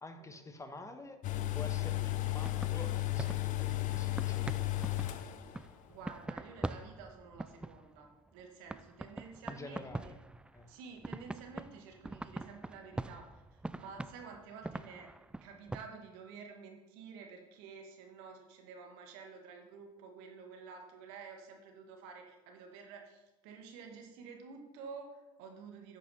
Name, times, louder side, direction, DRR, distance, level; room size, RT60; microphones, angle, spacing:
voice 1, 0.0-1.2 1.5-4.7 9.5-10.2 10.5-10.7, left 2 dB, 20° left, 7 dB, 1.3 m, -48 dB
sound 1, 1.2-5.7 5.9-6.0, left 16 dB, 55° left, 0.8 m, -34 dB
sound 2, 2.4-8.4 8.7-10.8 11.0-15.9, right 2 dB, 5° right, 0.3 m, -43 dB
voice 2, 5.9-10.1 10.7-13.2 13.5-15.1 15.4-26.0, right 5 dB, 70° right, 3 dB, 2.0 m, -50 dB
10.5 x 6.3 x 5.6 m, 1.0 s
hypercardioid pair, 75°, 16 cm